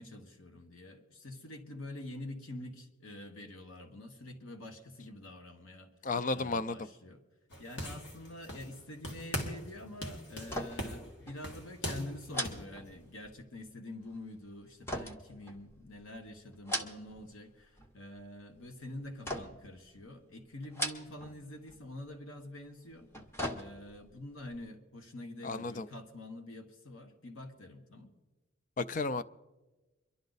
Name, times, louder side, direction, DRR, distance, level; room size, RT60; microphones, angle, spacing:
voice 1, 0.0-5.9 6.3-7.2 7.6-23.1 23.5-28.1, left 1 dB, 85° left, 1.4 m, -46 dB
voice 2, 6.0-6.8 25.4-25.9 28.8-29.2, left 3 dB, 40° left, 0.4 m, -33 dB
sound 1, 7.5-8.8 9.0-9.7 10.0-12.7, left 1 dB, 55° left, 2.0 m, -40 dB
sound 2, 10.4-11.0 11.3-11.4 12.3-13.4 14.9-16.0 16.5-17.3 17.6-18.2 19.2-19.8 20.6-21.4 21.7-21.8 22.9-24.1 24.5-24.6, equal, 10° left, 0.8 m, -39 dB
24.0 x 11.5 x 4.0 m
head